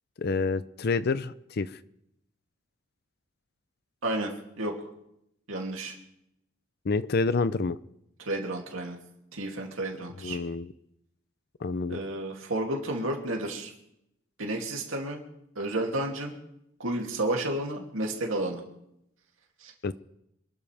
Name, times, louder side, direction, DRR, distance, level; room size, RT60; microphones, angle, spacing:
voice 1, 0.2-1.8 6.9-7.8 10.2-10.7 11.6-12.0 19.8-19.9, left 3 dB, 50° left, 16 dB, 0.5 m, -28 dB
voice 2, 4.0-4.7 5.5-5.9 8.2-9.0 9.3-10.4 11.9-13.7 14.4-15.2 15.6-16.4 16.8-18.6 19.6-19.7, right 1 dB, 85° right, 0 dB, 2.8 m, -31 dB
26.5 x 12.5 x 3.5 m, 0.79 s
head